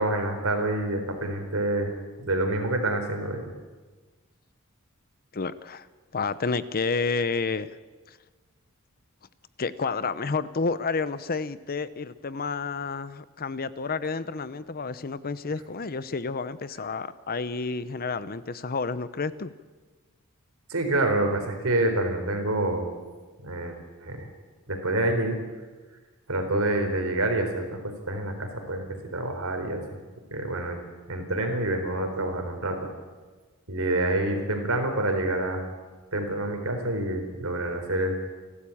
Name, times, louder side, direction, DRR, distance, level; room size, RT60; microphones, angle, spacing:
voice 1, 0.0-1.9 2.2-3.5 20.7-22.9 23.4-24.3 24.7-25.4 26.3-29.8 30.3-30.8 31.1-32.9 33.7-35.6 36.1-38.2, right 2 dB, 65° right, 5 dB, 4.2 m, -27 dB
voice 2, 5.3-5.9 6.1-7.7 8.1-8.2 9.6-19.5, left 4 dB, 40° left, 15 dB, 0.7 m, -30 dB
29.5 x 12.5 x 8.6 m, 1.3 s
head